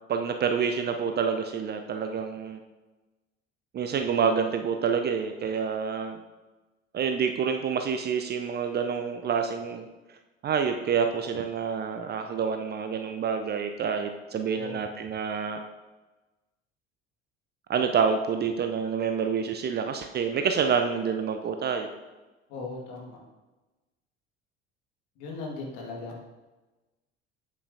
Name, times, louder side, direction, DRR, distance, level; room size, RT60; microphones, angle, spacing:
voice 1, 0.1-2.6 3.7-6.2 6.9-9.9 10.4-15.6 17.7-21.9, right 6 dB, 30° right, 6 dB, 0.6 m, -27 dB
voice 2, 22.5-23.2 25.2-26.3, left 3 dB, 60° left, -1 dB, 1.9 m, -38 dB
8.4 x 8.2 x 2.7 m, 1.2 s
figure-of-eight pair, 60°, 32 cm